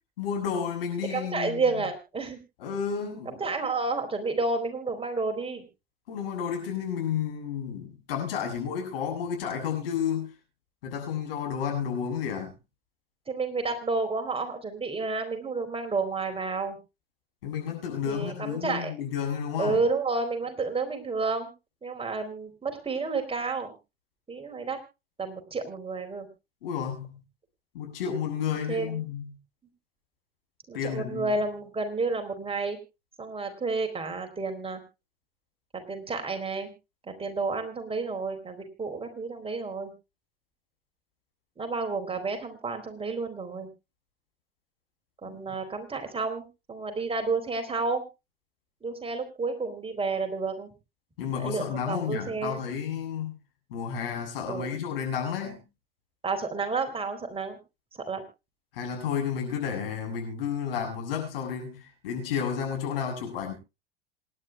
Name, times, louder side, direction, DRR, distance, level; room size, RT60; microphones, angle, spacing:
voice 1, 0.2-1.6 2.6-3.4 6.1-10.3 10.8-12.6 17.4-19.8 26.6-27.2 27.7-29.3 30.7-31.4 45.2-45.6 51.2-53.4 53.7-55.6 58.7-63.5, left 7 dB, 75° left, 2 dB, 7.7 m, -31 dB
voice 2, 1.1-2.4 3.3-5.6 13.3-16.8 18.1-18.9 19.6-21.5 21.8-23.7 24.3-24.8 25.2-26.3 28.7-29.0 30.7-32.8 33.2-34.8 35.7-36.7 37.0-39.9 41.6-43.7 45.2-48.0 48.8-50.7 51.3-52.6 54.5-54.7 56.2-57.6 58.1-58.2, right 3 dB, 20° right, 5 dB, 3.9 m, -30 dB
27.0 x 11.0 x 2.3 m, 0.28 s
hypercardioid pair, 75°, 29 cm